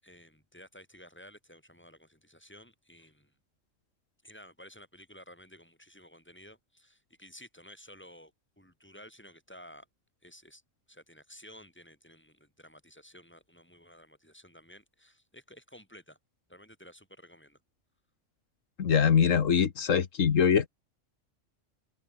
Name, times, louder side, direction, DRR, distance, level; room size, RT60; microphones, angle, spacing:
voice 1, 0.0-3.3 4.2-9.9 10.2-10.6 10.9-16.2 16.5-17.6, equal, 10° left, 7.3 m, -53 dB
voice 2, 18.8-20.7, left 7 dB, 85° left, 1.7 m, -23 dB
open air
omnidirectional pair, 1.3 m